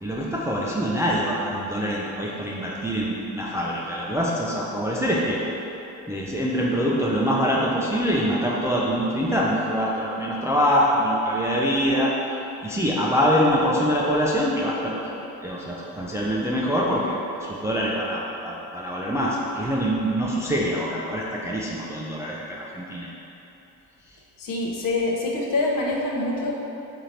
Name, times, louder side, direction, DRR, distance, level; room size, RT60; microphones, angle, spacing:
voice 1, 0.0-5.4 6.1-12.1 12.6-15.1 15.4-23.1, equal, 5° right, -5 dB, 0.5 m, -24 dB
voice 2, 24.4-26.5, left 2 dB, 45° left, -2 dB, 0.8 m, -25 dB
3.7 x 2.9 x 4.4 m, 3.0 s
hypercardioid pair, 50°, 47 cm